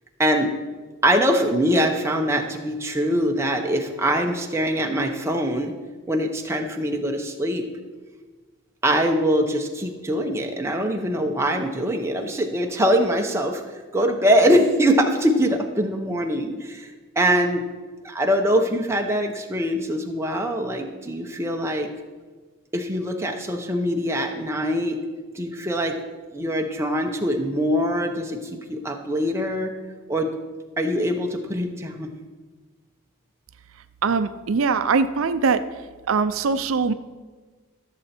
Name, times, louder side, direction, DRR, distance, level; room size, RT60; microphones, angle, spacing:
voice 1, 0.2-0.5 1.0-5.7 6.1-7.7 8.8-13.6 13.9-17.6 18.0-21.9 22.7-25.0 25.3-26.0 26.3-29.7 30.1-30.3 30.8-32.1, equal, 10° right, 2 dB, 0.8 m, -23 dB
voice 2, 34.0-35.7 36.1-36.9, right 5 dB, 70° right, 11 dB, 0.5 m, -21 dB
14.0 x 6.9 x 4.3 m, 1.4 s
head